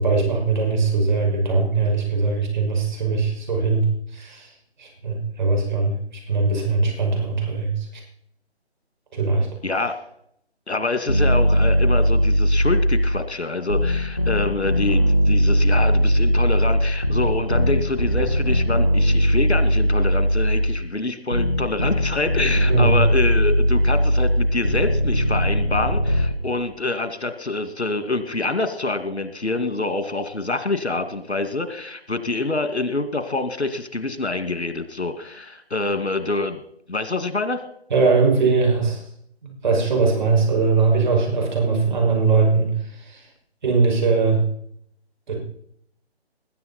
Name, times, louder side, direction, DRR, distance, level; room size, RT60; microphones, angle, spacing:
voice 1, 0.0-3.8 4.1-4.5 4.8-6.0 6.3-7.9 9.1-9.5 22.7-23.0 37.9-39.0 39.4-43.2 43.6-44.4 45.3-45.4, right 4 dB, 45° right, 1 dB, 6.0 m, -20 dB
voice 2, 9.6-10.0 10.7-36.6 36.9-37.6, left 2 dB, 80° left, 9 dB, 2.3 m, -26 dB
sound 1, 11.1-13.2 13.7-20.8 21.3-26.3, equal, 15° left, 0.5 m, -19 dB
20.5 x 10.0 x 4.3 m, 0.69 s
figure-of-eight pair, 150°, 33 cm